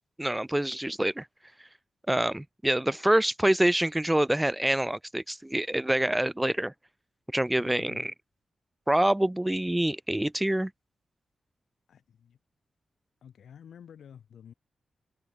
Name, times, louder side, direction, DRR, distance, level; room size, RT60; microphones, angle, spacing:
voice 1, 0.2-1.3 2.1-6.7 7.3-8.1 8.9-10.7, right 1 dB, 10° right, 0.4 m, -26 dB
voice 2, 7.6-8.1 11.9-12.4 13.2-14.5, left 8 dB, 80° left, 3.2 m, -49 dB
open air
cardioid pair, 80°, 0 cm